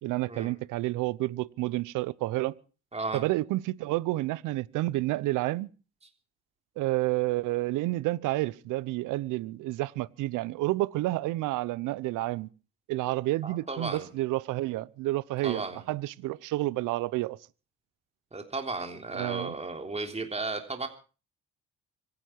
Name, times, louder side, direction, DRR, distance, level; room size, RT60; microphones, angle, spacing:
voice 1, 0.0-2.5 3.1-5.7 6.8-12.5 12.9-17.4 19.1-19.5, right 18 dB, 75° right, 0.9 m, -30 dB
voice 2, 2.9-3.2 13.4-14.1 15.4-15.8 18.3-20.9, right 3 dB, 20° right, 3.6 m, -34 dB
25.0 x 11.0 x 4.6 m
hypercardioid pair, 60°, 31 cm